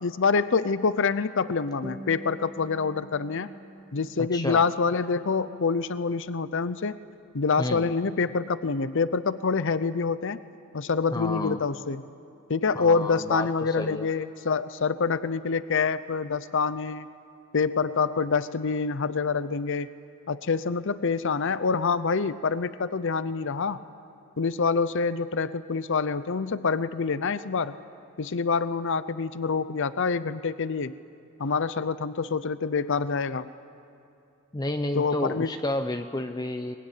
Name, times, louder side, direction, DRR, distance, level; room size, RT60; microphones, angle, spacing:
voice 1, 0.0-3.5 3.9-7.0 7.3-10.4 10.7-12.0 12.5-17.1 17.5-19.9 20.3-23.8 24.4-27.8 28.2-31.0 31.4-33.5 34.9-35.5, left 5 dB, 60° left, 14 dB, 0.7 m, -26 dB
sound 1, 1.8-6.8, right 1 dB, 20° right, 0.9 m, -47 dB
voice 2, 4.2-4.6 7.6-7.9 11.1-11.6 12.7-14.1 34.5-36.7, left 1 dB, 20° left, 7 dB, 0.6 m, -31 dB
23.5 x 21.5 x 10.0 m, 2.6 s
head